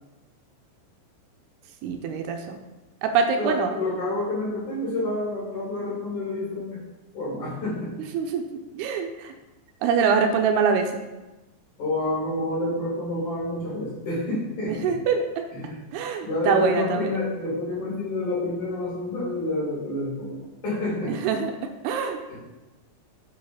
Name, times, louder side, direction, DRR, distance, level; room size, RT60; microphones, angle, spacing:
voice 1, 1.8-2.6 3.0-3.7 8.0-8.4 8.7-9.3 9.8-11.0 14.7-15.4 15.9-17.2 21.1-21.5 21.8-22.2, right 6 dB, 80° right, 5 dB, 2.6 m, -24 dB
voice 2, 3.4-6.8 7.1-7.9 11.8-14.9 15.5-15.8 16.2-21.1 22.3-22.4, left 2 dB, 50° left, -8 dB, 4.7 m, -28 dB
8.3 x 5.4 x 5.6 m, 1.1 s
omnidirectional pair, 4.7 m